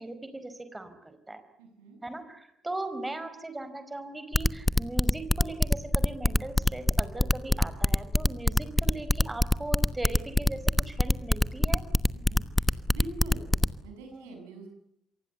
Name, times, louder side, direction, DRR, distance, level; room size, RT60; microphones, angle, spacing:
voice 1, 0.0-1.4 2.0-11.8 14.1-14.3, right 2 dB, 15° right, 10 dB, 4.9 m, -38 dB
voice 2, 1.6-2.0 12.1-13.5 13.8-14.7, right 2 dB, 70° right, 5 dB, 7.1 m, -44 dB
sound 1, 4.3-13.7, left 1 dB, 10° left, 1.1 m, -23 dB
28.0 x 24.0 x 7.0 m, 0.77 s
figure-of-eight pair, 45°, 0 cm